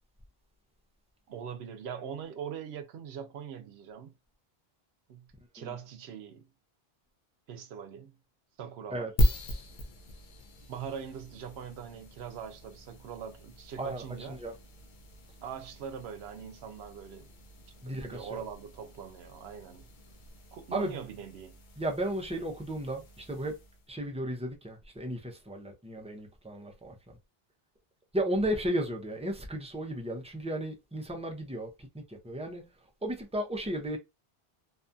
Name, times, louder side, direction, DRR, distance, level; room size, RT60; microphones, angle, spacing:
voice 1, 1.3-4.1 5.1-5.3 5.5-6.5 7.5-8.1 8.6-9.1 10.7-14.4 15.4-17.3 17.9-19.9 20.5-21.6, right 7 dB, 80° right, 0.8 m, -42 dB
sound 1, 9.2-23.9, equal, 55° left, 0.7 m, -37 dB
voice 2, 13.8-14.5 17.8-18.4 20.7-20.9 21.8-23.6 23.9-27.2 28.1-32.7 33.0-34.0, right 1 dB, 10° right, 0.3 m, -34 dB
2.6 x 2.3 x 2.5 m
omnidirectional pair, 1.1 m